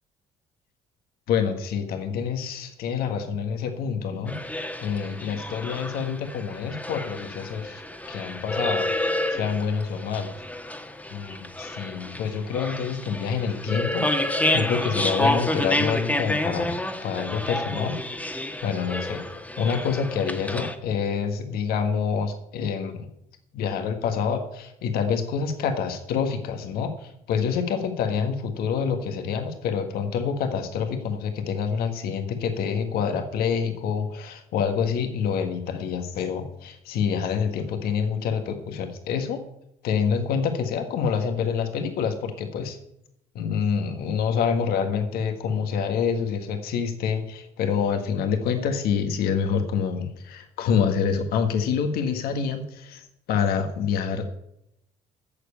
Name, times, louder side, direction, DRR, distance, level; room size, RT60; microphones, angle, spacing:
voice 1, 1.3-4.4 4.8-7.8 8.1-10.3 11.1-18.0 18.6-19.2 19.6-23.1 23.5-39.4 39.8-42.8 43.4-54.4, left 6 dB, 80° left, 6 dB, 1.7 m, -27 dB
sound 1, 4.3-20.8, left 1 dB, 10° left, 1.5 m, -29 dB
10.5 x 6.9 x 8.4 m, 0.80 s
supercardioid pair, 75°, 16 cm